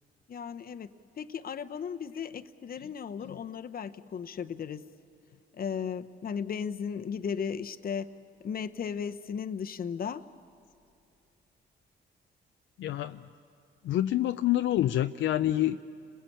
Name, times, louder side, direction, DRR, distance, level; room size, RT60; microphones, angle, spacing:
voice 1, 0.3-0.9 1.2-4.9 5.5-8.1 8.4-10.2, left 7 dB, 50° left, 10 dB, 1.0 m, -35 dB
voice 2, 12.8-13.3 13.8-15.8, left 13 dB, 75° left, 8 dB, 0.6 m, -27 dB
30.0 x 21.5 x 8.6 m, 2.6 s
cardioid pair, 90°, 20 cm